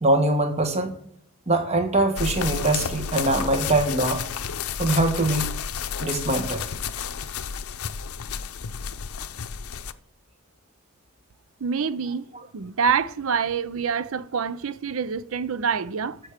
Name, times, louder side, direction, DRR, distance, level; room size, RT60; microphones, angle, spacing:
voice 1, 0.0-1.0 1.5-4.2 4.8-5.5 6.0-6.6, right 2 dB, 30° right, 1.4 m, -23 dB
sound 1, 2.2-9.9, left 7 dB, 75° left, 0.6 m, -31 dB
voice 2, 11.6-16.2, right 6 dB, 65° right, 0.5 m, -26 dB
13.5 x 6.1 x 5.0 m
head